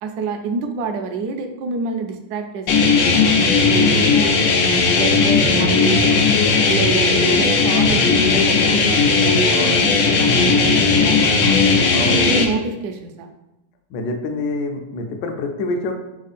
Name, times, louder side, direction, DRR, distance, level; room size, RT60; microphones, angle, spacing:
voice 1, 0.0-4.4 5.0-6.3 6.7-11.6 12.0-13.3, right 4 dB, 75° right, 6 dB, 0.9 m, -28 dB
sound 1, 2.7-12.4, left 4 dB, 85° left, 0.7 m, -16 dB
voice 2, 9.5-10.0 11.9-12.3 13.9-15.9, left 2 dB, 70° left, 4 dB, 1.1 m, -26 dB
3.6 x 3.6 x 4.1 m, 0.96 s
omnidirectional pair, 2.2 m